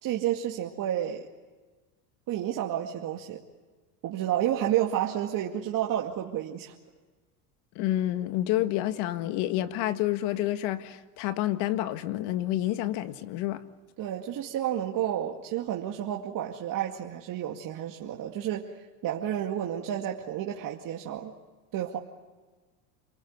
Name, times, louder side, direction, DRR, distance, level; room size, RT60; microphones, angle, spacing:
voice 1, 0.0-1.3 2.3-3.4 4.0-6.7 14.0-18.7 19.0-21.3 21.7-22.0, right 11 dB, 45° right, -1 dB, 2.3 m, -30 dB
voice 2, 7.8-13.6, left 14 dB, 65° left, 11 dB, 1.8 m, -29 dB
28.0 x 20.5 x 9.6 m, 1.3 s
supercardioid pair, 110°, 44 cm